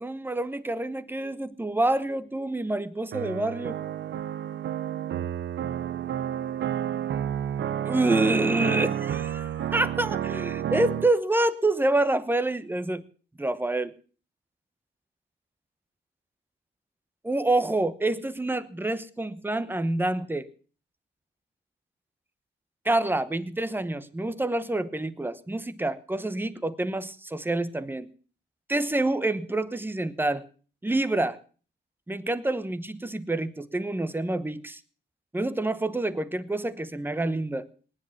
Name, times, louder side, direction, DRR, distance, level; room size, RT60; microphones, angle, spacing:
voice 1, 0.0-3.8 7.8-13.0 13.4-13.9 17.2-20.5 22.8-28.1 28.7-30.5 30.8-31.4 32.1-34.8 35.3-37.7, right 2 dB, 10° right, 14 dB, 1.0 m, -27 dB
sound 1, 3.1-11.1, right 10 dB, 65° right, 0.6 m, -30 dB
19.0 x 10.5 x 5.9 m, 0.40 s
cardioid pair, 105°, 21 cm